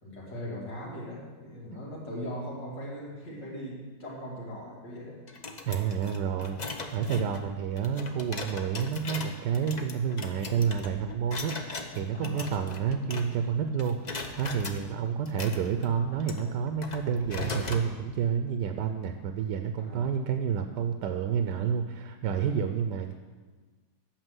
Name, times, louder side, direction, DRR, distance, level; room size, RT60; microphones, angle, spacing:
voice 1, 0.0-5.2 12.1-12.4 14.6-14.8 19.8-20.0, equal, 90° left, -5 dB, 3.4 m, -39 dB
sound 1, 5.3-13.5 13.8-14.8 15.2-17.9, left 3 dB, 40° left, 0.6 m, -39 dB
voice 2, 5.7-6.6 6.9-23.1, right 7 dB, 80° right, 6 dB, 1.3 m, -29 dB
8.9 x 6.5 x 7.9 m, 1.4 s
omnidirectional pair, 1.9 m